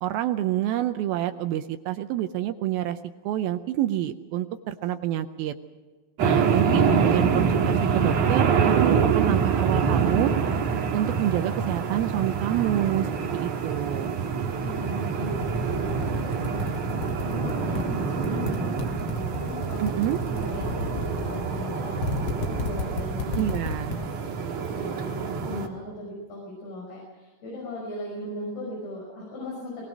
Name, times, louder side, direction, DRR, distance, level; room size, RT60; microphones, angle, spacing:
voice 1, 0.0-3.0 3.2-5.5 6.2-10.3 10.9-14.1 19.8-20.2 23.3-24.0, right 12 dB, 80° right, 8 dB, 2.4 m, -27 dB
sound 1, 6.2-25.7, right 6 dB, 55° right, 2.5 m, -26 dB
sound 2, 12.6-14.8 15.2-17.8 18.2-24.0, left 3 dB, 50° left, 2.2 m, -33 dB
voice 2, 14.6-19.9 20.3-23.4 23.8-24.5 24.7-29.8, left 1 dB, 75° left, -3 dB, 7.5 m, -38 dB
21.0 x 20.0 x 6.2 m, 1.4 s
omnidirectional pair, 4.5 m